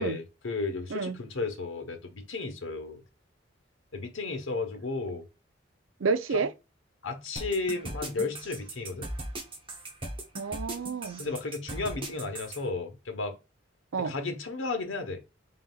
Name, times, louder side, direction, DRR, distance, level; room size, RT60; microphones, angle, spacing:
voice 1, 0.0-3.0 3.9-5.2 6.3-6.4 7.0-9.1 11.2-13.3 14.0-15.2, left 3 dB, 85° left, 1.1 m, -33 dB
voice 2, 6.0-6.5 10.4-11.2 13.9-14.1, right 4 dB, 90° right, 0.5 m, -29 dB
sound 1, 7.4-12.6, right 1 dB, 25° right, 0.9 m, -38 dB
4.1 x 3.9 x 2.3 m
head